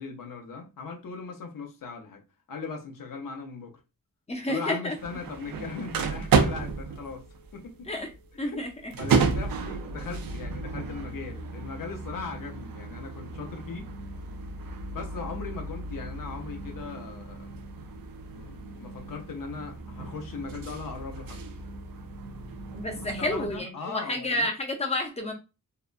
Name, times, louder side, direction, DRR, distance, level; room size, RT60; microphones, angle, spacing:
voice 1, 0.0-2.2 2.5-3.8 4.5-7.3 7.5-7.9 8.4-8.5 9.0-13.9 14.9-17.5 18.3-21.4 22.9-24.5, left 4 dB, 70° left, 0.7 m, -39 dB
voice 2, 4.3-5.0 7.9-8.1 8.4-8.9 22.7-25.3, left 1 dB, 20° left, 0.5 m, -30 dB
sound 1, 5.0-23.6, right 5 dB, 90° right, 0.5 m, -32 dB
2.8 x 2.2 x 2.4 m
wide cardioid pair, 165°, 34 cm